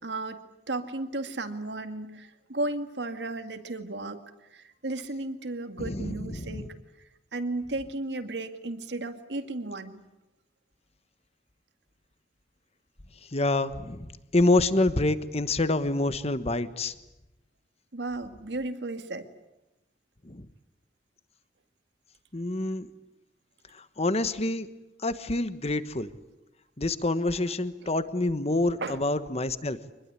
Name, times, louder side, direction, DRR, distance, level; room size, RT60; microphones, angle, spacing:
voice 1, 0.0-4.2 4.5-6.8 7.3-10.0 17.9-19.3 28.8-29.0, right 2 dB, 85° right, 8 dB, 2.1 m, -34 dB
voice 2, 5.8-6.7 13.3-16.9 20.2-20.5 22.3-22.9 23.7-24.7 25.0-26.1 26.8-29.8, left 2 dB, 35° left, 13 dB, 1.3 m, -27 dB
25.5 x 21.0 x 9.9 m, 1.0 s
head